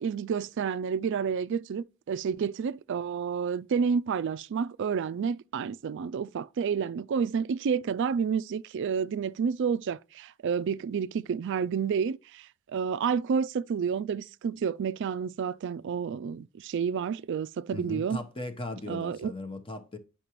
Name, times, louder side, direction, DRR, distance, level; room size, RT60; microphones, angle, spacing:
voice 1, 0.0-18.2 18.9-19.3, right 6 dB, 55° right, 0.3 m, -30 dB
voice 2, 17.7-20.0, left 2 dB, 25° left, 0.9 m, -38 dB
9.7 x 5.8 x 3.0 m
head